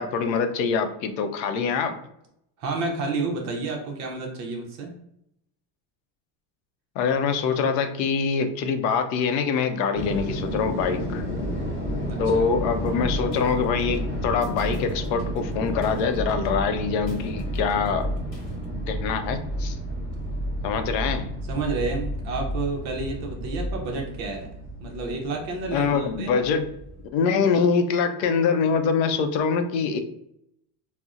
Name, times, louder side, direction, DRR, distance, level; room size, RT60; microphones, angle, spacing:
voice 1, 0.0-1.9 7.0-11.2 12.2-18.1 18.9-19.8 20.6-21.3 25.7-26.7 27.1-30.0, left 5 dB, 85° left, 8 dB, 0.6 m, -24 dB
voice 2, 2.6-4.9 12.1-12.5 21.5-24.5 24.8-26.3, right 3 dB, 35° right, 1 dB, 0.5 m, -30 dB
sound 1, 9.9-27.1, equal, 10° left, 0.7 m, -31 dB
sound 2, 12.8-18.8, right 1 dB, 40° left, 1.1 m, -38 dB
4.0 x 2.0 x 2.3 m, 0.77 s
cardioid pair, 165°, 49 cm